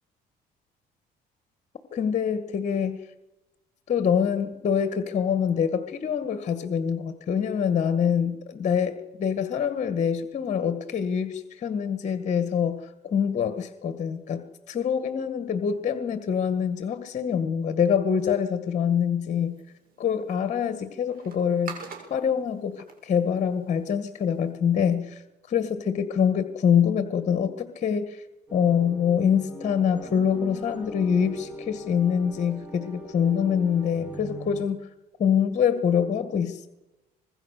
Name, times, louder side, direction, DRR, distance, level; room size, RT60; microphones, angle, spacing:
voice 1, 1.9-3.0 3.9-19.5 20.0-21.8 22.1-25.2 25.5-28.2 28.5-34.8 35.2-36.7, left 7 dB, 45° left, 10 dB, 1.9 m, -25 dB
sound 1, 19.4-24.5, right 5 dB, 55° right, 7.2 m, -46 dB
sound 2, 28.5-34.6, equal, 10° right, 4.8 m, -41 dB
25.5 x 21.0 x 6.7 m, 0.99 s
cardioid pair, 110°, 17 cm